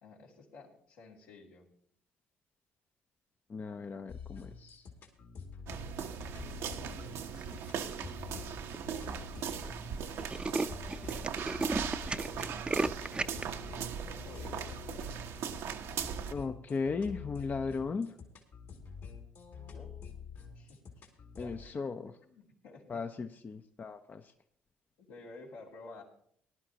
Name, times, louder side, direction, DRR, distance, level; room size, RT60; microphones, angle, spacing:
voice 1, 0.0-1.7 13.0-15.1 19.7-20.0 20.5-20.8 21.1-21.9 22.2-23.3 25.0-26.0, left 3 dB, 80° left, -3 dB, 3.0 m, -53 dB
voice 2, 3.5-4.9 16.3-18.1 21.4-22.1 22.9-24.2, left 4 dB, 35° left, 8 dB, 0.7 m, -36 dB
sound 1, 4.1-21.7, left 5 dB, 65° left, 2.5 m, -48 dB
sound 2, 5.7-16.3, right 7 dB, 70° right, 0.9 m, -39 dB
Tools, 7.4-7.8 8.4-8.5 8.7-8.8 9.1-9.3 9.6-9.7 10.0-13.4, right 3 dB, 20° right, 0.6 m, -34 dB
19.0 x 11.0 x 2.9 m, 0.64 s
supercardioid pair, 60°, 5 cm